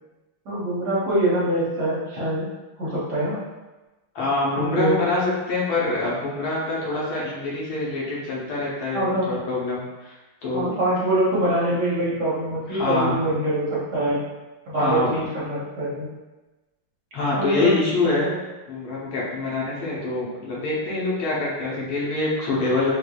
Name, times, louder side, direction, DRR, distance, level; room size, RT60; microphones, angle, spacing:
voice 1, 0.4-2.4 2.8-3.4 4.6-5.0 8.9-9.3 10.5-14.2 14.7-16.1 17.3-18.4, right 1 dB, 55° right, -9 dB, 1.4 m, -24 dB
voice 2, 4.1-10.7 12.7-13.2 14.7-15.1 17.1-18.3 18.7-22.9, left 2 dB, 75° left, -6 dB, 1.7 m, -25 dB
4.5 x 2.5 x 2.3 m, 1.1 s
omnidirectional pair, 2.4 m